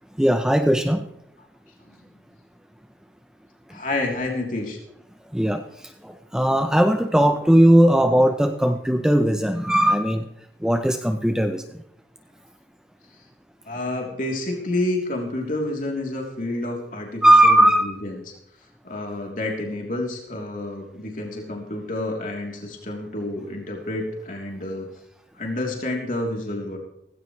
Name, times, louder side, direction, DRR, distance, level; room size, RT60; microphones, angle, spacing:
voice 1, 0.1-1.0 3.7-3.8 5.3-10.3 10.6-11.8 17.2-18.0, right 1 dB, 5° right, 6 dB, 0.7 m, -18 dB
voice 2, 3.7-4.8 13.6-18.1 18.8-24.9 25.4-26.8, left 2 dB, 50° left, 0 dB, 3.5 m, -29 dB
18.0 x 16.5 x 3.3 m, 0.77 s
head